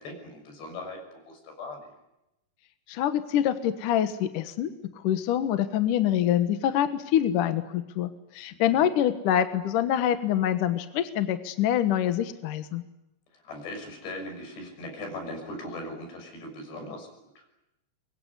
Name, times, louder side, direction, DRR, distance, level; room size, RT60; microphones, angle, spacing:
voice 1, 0.0-1.9 8.7-8.9 13.3-17.4, left 1 dB, 85° left, 3 dB, 8.5 m, -39 dB
voice 2, 2.9-4.7 5.0-12.8, left 10 dB, 65° left, 10 dB, 2.5 m, -25 dB
24.0 x 23.0 x 9.9 m, 0.91 s
omnidirectional pair, 4.8 m